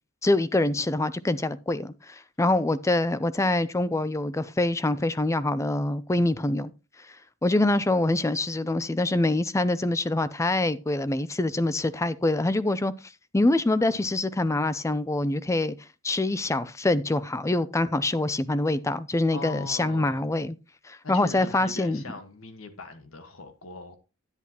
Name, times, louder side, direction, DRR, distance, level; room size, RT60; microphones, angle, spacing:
voice 1, 0.2-6.7 7.0-7.2 7.4-15.8 16.0-20.6 20.8-22.0, left 2 dB, 15° left, 0.4 m, -25 dB
voice 2, 19.3-20.3 21.0-24.0, left 2 dB, 85° left, 1.4 m, -40 dB
10.5 x 10.0 x 2.9 m
head